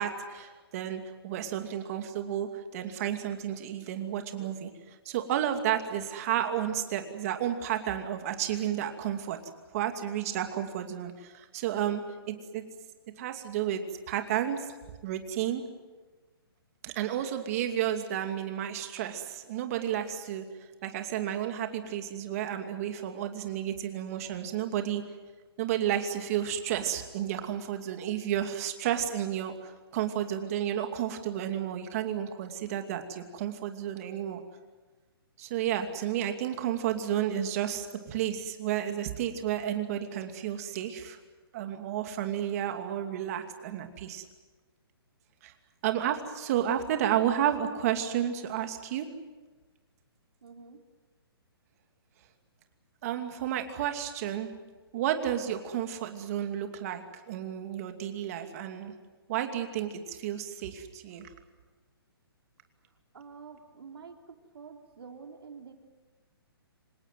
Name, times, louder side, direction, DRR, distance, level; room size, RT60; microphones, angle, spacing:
voice 1, 0.0-4.7 5.0-9.4 9.7-12.6 13.2-13.8 14.1-14.7 15.0-15.6 16.8-20.5 20.8-25.0 25.6-34.4 35.4-41.2 41.5-44.2 45.4-45.5 45.8-49.1 53.0-54.5 54.9-58.9 59.3-61.3, right 10 dB, 35° right, 6 dB, 2.6 m, -32 dB
voice 2, 50.4-50.8 63.1-65.7, right 5 dB, 75° right, 4 dB, 3.9 m, -48 dB
27.0 x 18.0 x 9.3 m, 1.3 s
hypercardioid pair, 155°, 13 cm